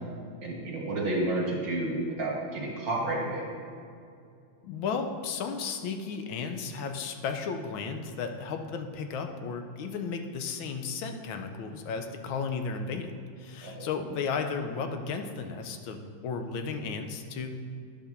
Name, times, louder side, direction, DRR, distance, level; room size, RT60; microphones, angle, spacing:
voice 1, 0.4-3.4 13.6-13.9, right 2 dB, 60° right, -2 dB, 2.2 m, -30 dB
voice 2, 4.6-13.1 13.4-17.6, left 5 dB, 70° left, 6 dB, 1.4 m, -34 dB
10.5 x 5.1 x 6.6 m, 2.4 s
omnidirectional pair, 2.4 m